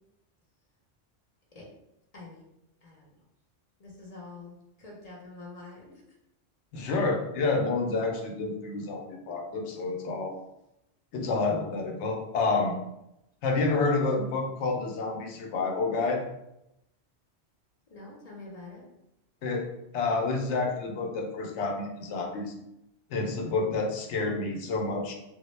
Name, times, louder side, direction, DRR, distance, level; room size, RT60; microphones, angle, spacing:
voice 1, 2.8-3.1 3.8-6.0 17.9-18.8, left 3 dB, 40° left, -3 dB, 0.6 m, -46 dB
voice 2, 6.7-10.4 11.1-12.8 13.4-16.2 19.4-19.7 19.9-22.5 23.1-25.1, left 3 dB, 80° left, 2 dB, 0.9 m, -29 dB
3.5 x 2.1 x 3.1 m, 0.85 s
omnidirectional pair, 1.2 m